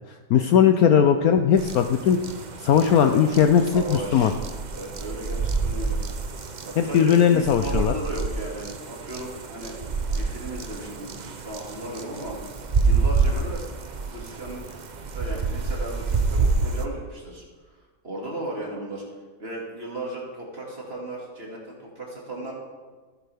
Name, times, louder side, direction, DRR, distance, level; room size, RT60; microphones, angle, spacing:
voice 1, 0.1-2.2 2.6-4.3 6.8-7.9, left 8 dB, 70° left, 7 dB, 0.9 m, -19 dB
sound 1, 1.6-16.8, right 4 dB, 70° right, 0.4 m, -28 dB
voice 2, 2.8-4.3 4.7-6.0 6.6-9.8 10.1-12.4 12.8-13.7 14.1-14.8 15.1-17.4 18.0-19.0 19.4-22.5, right 1 dB, 35° right, -3 dB, 2.5 m, -36 dB
15.0 x 9.8 x 3.5 m, 1.4 s
omnidirectional pair, 1.9 m